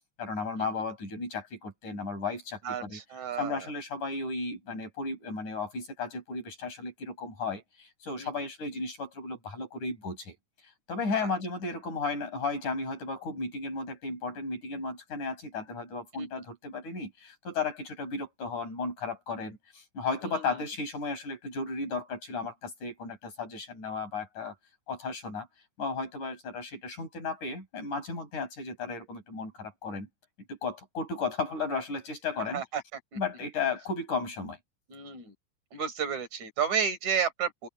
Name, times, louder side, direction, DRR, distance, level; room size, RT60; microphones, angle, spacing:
voice 1, 0.2-3.0 3.4-10.4 10.9-24.5 24.9-25.5 25.8-30.1 30.5-32.6 33.2-34.6, left 4 dB, 75° left, 9.0 m, -34 dB
voice 2, 2.6-3.6 8.2-8.3 11.2-11.3 16.1-16.3 20.2-20.6 32.5-32.8 33.1-33.2 34.9-35.3 35.7-37.7, right 7 dB, 65° right, 6.3 m, -32 dB
omnidirectional pair, 3.5 m